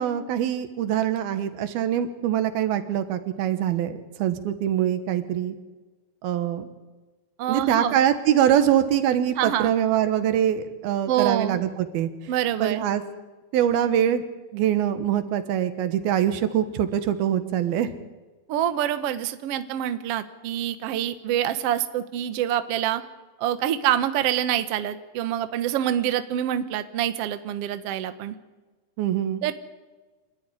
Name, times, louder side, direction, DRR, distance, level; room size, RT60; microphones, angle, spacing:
voice 1, 0.0-5.6 6.2-6.7 7.5-12.1 12.6-13.0 13.5-14.2 14.5-17.9 29.0-29.4, right 10 dB, 85° right, 10 dB, 3.2 m, -23 dB
voice 2, 7.4-8.0 9.4-9.7 11.1-11.6 12.3-12.9 18.5-23.0 23.4-28.3 29.4-29.5, right 11 dB, 70° right, 10 dB, 1.4 m, -26 dB
26.5 x 13.0 x 9.9 m, 1.3 s
omnidirectional pair, 4.2 m